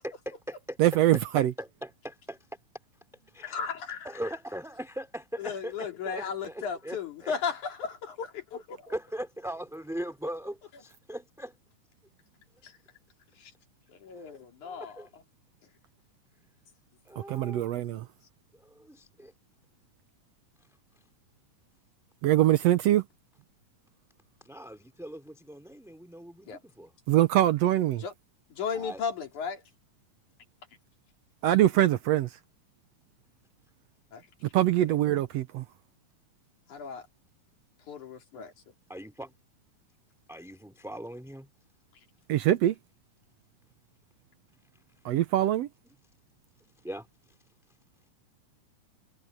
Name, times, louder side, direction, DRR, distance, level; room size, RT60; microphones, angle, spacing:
voice 1, 0.0-0.8 1.4-2.4 3.3-3.5 4.0-7.3 8.9-11.5 14.2-15.1 17.0-17.8 18.6-19.3 24.4-26.9 28.7-29.0 34.9-35.0 38.9-39.3 40.3-41.5 46.8-47.1, right 1 dB, ahead, 3.2 m, -40 dB
voice 2, 0.8-1.5 17.3-18.1 22.2-23.0 27.1-28.0 31.4-32.3 34.5-35.6 42.3-42.8 45.0-45.7, right 13 dB, 75° right, 1.5 m, -23 dB
voice 3, 3.4-4.1 5.4-8.9 12.6-12.7 13.4-13.5 13.9-15.0 26.5-26.6 28.0-28.1 28.5-29.6 34.1-34.3 36.7-37.0 37.9-38.5, left 6 dB, 65° left, 4.4 m, -35 dB
omnidirectional pair, 3.8 m